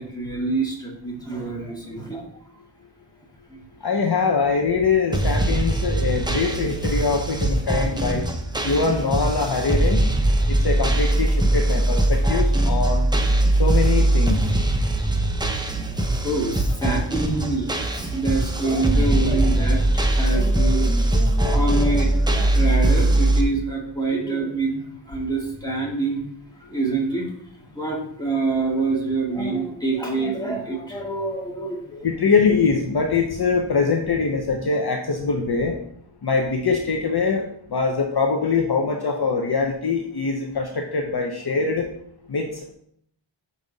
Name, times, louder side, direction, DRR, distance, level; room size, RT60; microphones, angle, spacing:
voice 1, 0.0-2.2 3.5-3.6 16.2-26.2 26.7-27.3 27.5-32.1, right 3 dB, 10° left, -3 dB, 1.9 m, -26 dB
voice 2, 3.8-8.2 8.6-10.1 10.5-13.1 13.6-14.5 32.0-35.8 36.2-41.9 42.3-42.7, left 4 dB, 50° left, 2 dB, 0.8 m, -23 dB
sound 1, 5.1-23.4, right 1 dB, 10° right, 0.7 m, -21 dB
6.2 x 5.4 x 4.0 m, 0.69 s
wide cardioid pair, 95°, 49 cm